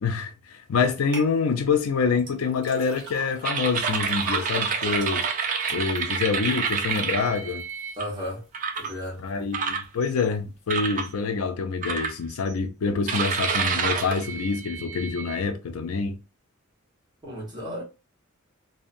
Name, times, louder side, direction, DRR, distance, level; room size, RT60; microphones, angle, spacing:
voice 1, 0.0-5.3 5.7-7.6 9.2-16.2, left 5 dB, 85° left, 0.4 m, -26 dB
sound 1, 1.1-1.3 2.2-8.3 8.8-9.3 9.8-9.9, right 2 dB, 60° right, 1.3 m, -40 dB
sound 2, 3.4-8.0 8.5-8.9 9.5-10.3 10.7-11.1 11.8-12.5 13.1-15.4, right 6 dB, 40° right, 0.4 m, -28 dB
voice 2, 8.0-8.5 8.8-9.3 17.2-17.8, equal, 20° right, 1.2 m, -34 dB
2.6 x 2.2 x 2.5 m
head